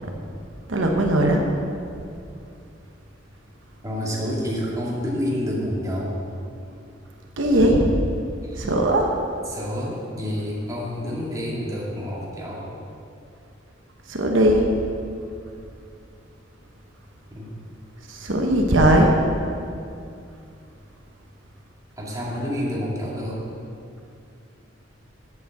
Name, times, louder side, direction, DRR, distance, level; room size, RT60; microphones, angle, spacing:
voice 1, 0.7-1.4 7.4-7.9 8.6-9.1 14.1-14.6 18.1-19.1, right 1 dB, 80° right, 1 dB, 1.1 m, -18 dB
voice 2, 3.8-6.1 8.4-8.7 9.5-12.7 17.3-17.5 22.0-23.4, equal, 20° right, -5 dB, 2.0 m, -28 dB
8.2 x 7.2 x 7.7 m, 2.5 s
head